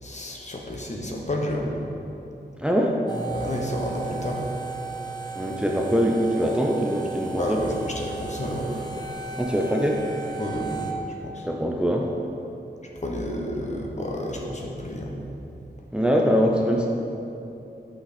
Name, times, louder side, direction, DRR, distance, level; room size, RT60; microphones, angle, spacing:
voice 1, 0.0-1.7 3.3-4.4 7.4-9.1 10.4-10.8 11.2-11.5 13.0-15.2, left 1 dB, 40° left, -1 dB, 1.2 m, -30 dB
voice 2, 2.6-3.0 5.3-7.6 9.3-10.2 11.5-12.1 15.9-16.9, equal, 5° right, 0 dB, 0.7 m, -23 dB
sound 1, 3.1-10.9, right 4 dB, 25° left, 1.0 m, -35 dB
8.3 x 5.9 x 4.3 m, 2.9 s
wide cardioid pair, 80°, 18 cm